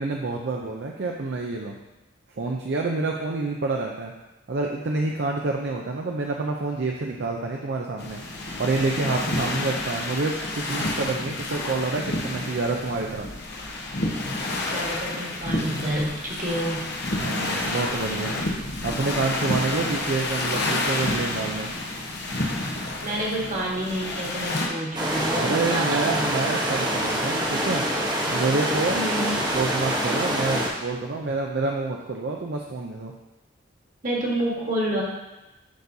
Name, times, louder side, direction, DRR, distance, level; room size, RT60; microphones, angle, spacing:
voice 1, 0.0-1.8 2.4-4.1 4.5-8.2 8.6-13.3 17.2-18.4 18.8-21.7 25.4-27.9 28.3-29.0 29.5-33.1, right 3 dB, 55° right, 1 dB, 0.5 m, -28 dB
sound 1, 8.0-24.7, left 2 dB, 55° left, 1.0 m, -29 dB
voice 2, 14.7-16.9 23.0-26.4 28.9-29.4 34.0-35.0, right 1 dB, 40° right, -3 dB, 1.5 m, -28 dB
sound 2, 24.9-30.7, equal, 20° right, 0.9 m, -25 dB
11.5 x 4.0 x 2.7 m, 1.1 s
head